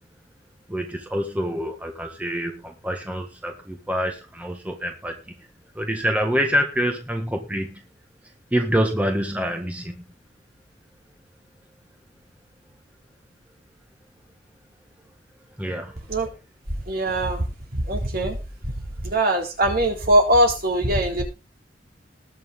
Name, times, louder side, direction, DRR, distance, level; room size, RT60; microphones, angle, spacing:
voice 1, 0.7-5.2 5.7-7.8 8.5-10.0 15.6-16.0, equal, 10° right, 3 dB, 1.7 m, -26 dB
voice 2, 16.9-18.4 18.6-18.7 19.0-21.2, right 1 dB, 55° right, 1 dB, 3.8 m, -21 dB
20.0 x 6.8 x 3.8 m, 0.30 s
head